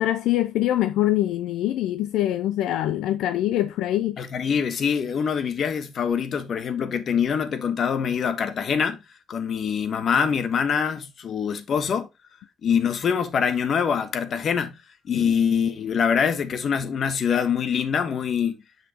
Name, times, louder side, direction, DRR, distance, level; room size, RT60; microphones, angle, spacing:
voice 1, 0.0-4.2 15.1-15.3, left 13 dB, 90° left, 0.5 m, -24 dB
voice 2, 4.2-9.0 9.3-12.1 12.6-14.7 15.0-18.6, left 7 dB, 55° left, 1.3 m, -24 dB
7.3 x 6.1 x 2.9 m
cardioid pair, 90°, 0 cm